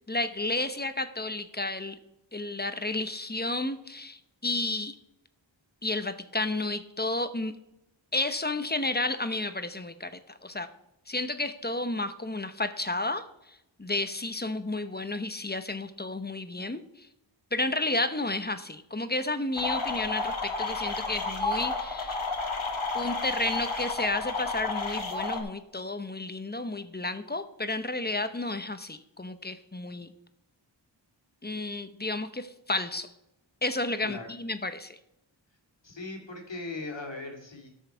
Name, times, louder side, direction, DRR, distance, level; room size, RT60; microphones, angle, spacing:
voice 1, 0.1-2.0 2.3-5.0 5.8-7.5 8.1-10.7 11.1-13.3 13.8-17.1 17.5-22.3 22.9-30.1 31.4-33.1 33.6-35.0, left 2 dB, 20° left, 10 dB, 0.9 m, -32 dB
sound 1, 19.6-25.4, left 3 dB, 90° left, 1.6 m, -31 dB
voice 2, 35.8-37.7, left 2 dB, 70° left, 1 dB, 2.4 m, -39 dB
14.5 x 6.5 x 4.6 m, 0.86 s
wide cardioid pair, 55°, 46 cm